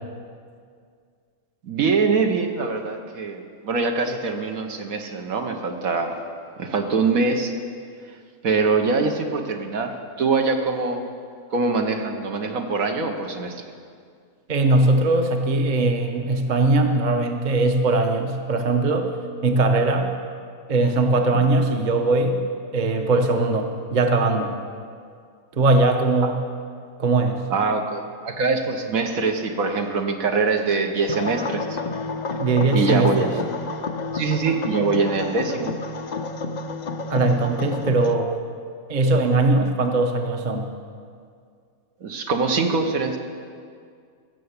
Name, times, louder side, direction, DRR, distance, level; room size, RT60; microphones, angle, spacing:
voice 1, 1.6-6.2 6.6-7.5 8.4-11.0 11.5-13.6 21.3-21.4 27.5-31.8 32.7-33.4 34.1-35.7 42.0-43.2, right 4 dB, 70° right, 4 dB, 1.4 m, -23 dB
voice 2, 14.5-19.1 19.4-20.1 20.7-22.4 22.7-24.5 25.5-26.4 27.0-27.4 32.4-33.3 37.1-38.3 38.9-40.7, right 2 dB, 35° right, 5 dB, 0.9 m, -20 dB
sound 1, 31.1-38.2, left 3 dB, 60° left, 0.4 m, -30 dB
15.5 x 6.9 x 8.1 m, 2.2 s
omnidirectional pair, 1.6 m